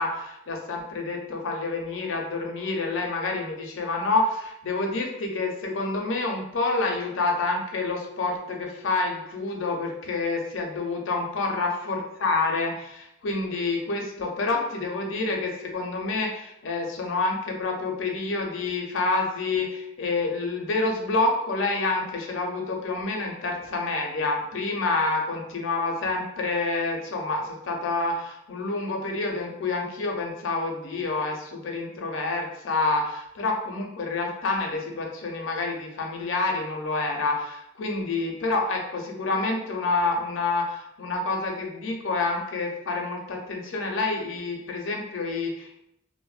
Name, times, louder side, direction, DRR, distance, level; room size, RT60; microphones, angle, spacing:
voice 1, 0.0-45.8, left 3 dB, 70° left, 1 dB, 0.5 m, -28 dB
3.0 x 2.1 x 2.3 m, 0.82 s
head